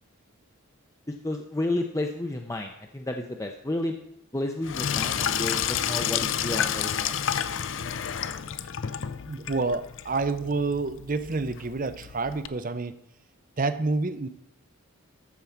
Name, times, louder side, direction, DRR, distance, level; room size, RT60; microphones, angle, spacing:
voice 1, 1.1-3.9 4.3-7.1, left 1 dB, 15° left, 3 dB, 0.6 m, -31 dB
Sink (filling or washing), 4.6-12.5, left 8 dB, 55° left, 0.5 m, -30 dB
voice 2, 9.2-12.9 13.6-14.3, right 3 dB, 40° right, 13 dB, 0.6 m, -28 dB
13.0 x 4.7 x 7.1 m, 0.76 s
head